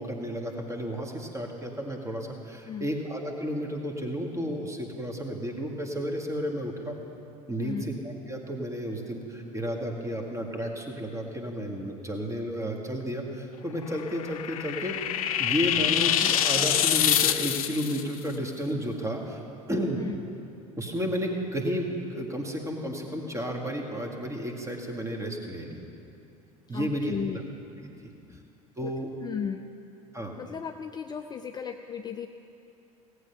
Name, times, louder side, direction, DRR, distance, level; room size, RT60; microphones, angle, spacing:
voice 1, 0.0-6.9 7.5-8.0 8.3-15.0 15.4-19.4 19.7-20.0 20.8-25.8 26.7-27.4 27.8-28.1 28.8-29.1 30.1-30.3, equal, 15° right, 2 dB, 1.8 m, -32 dB
voice 2, 7.6-7.9 19.9-20.2 26.7-27.5 28.3-28.4 28.8-28.9 29.2-29.7 30.4-32.3, left 7 dB, 20° left, 6 dB, 0.5 m, -35 dB
sound 1, 13.9-18.0, left 10 dB, 70° left, 0.6 m, -25 dB
17.5 x 8.3 x 5.7 m, 2.8 s
figure-of-eight pair, 65°, 19 cm